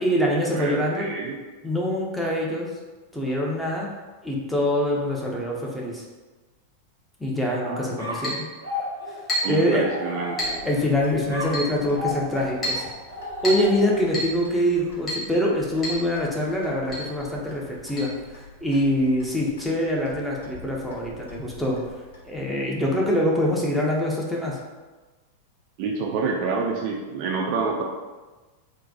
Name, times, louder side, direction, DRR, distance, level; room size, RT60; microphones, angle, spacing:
voice 1, 0.0-1.1 1.6-2.7 3.1-3.9 4.2-6.0 7.2-8.5 9.5-9.9 10.6-12.9 13.4-21.8 22.2-24.6, left 1 dB, 5° left, -3 dB, 0.6 m, -24 dB
voice 2, 0.5-1.3 7.3-8.0 9.4-10.7 25.8-27.8, right 4 dB, 45° right, 0 dB, 0.4 m, -28 dB
sound 1, 8.0-10.8 11.3-14.2, left 2 dB, 75° right, 0.7 m, -34 dB
Chink clink, 8.2-8.5 9.3-9.6 10.4-10.6 11.5-11.7 12.6-12.9 13.4-13.7 14.1-14.4 15.1-15.3 15.8-16.0 16.3-16.4 16.9-17.1 18.0-18.1, equal, 20° left, 1.4 m, -28 dB
Clock, 10.4-22.5, left 3 dB, 60° left, 0.7 m, -47 dB
3.9 x 2.2 x 2.7 m, 1.2 s
figure-of-eight pair, 90°, 0 cm